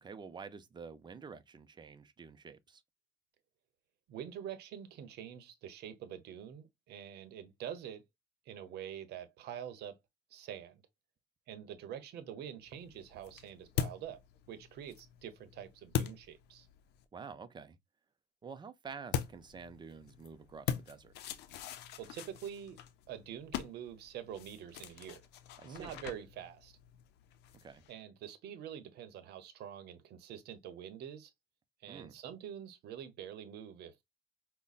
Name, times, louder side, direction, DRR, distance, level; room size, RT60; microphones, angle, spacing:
voice 1, 0.0-2.8 17.1-17.8 18.4-21.1 25.6-25.9 27.5-27.8 31.9-32.2, right 5 dB, 25° right, 0.6 m, -49 dB
voice 2, 4.1-8.0 8.5-10.0 10.3-10.8 11.5-14.2 14.5-16.7 22.0-22.8 23.1-25.2 25.6-26.8 27.9-31.3 31.8-34.0, right 9 dB, 75° right, 0.8 m, -46 dB
sound 1, 12.6-17.0 19.1-27.9, left 10 dB, 85° left, 0.5 m, -42 dB
5.3 x 2.2 x 2.4 m
cardioid pair, 110°, 17 cm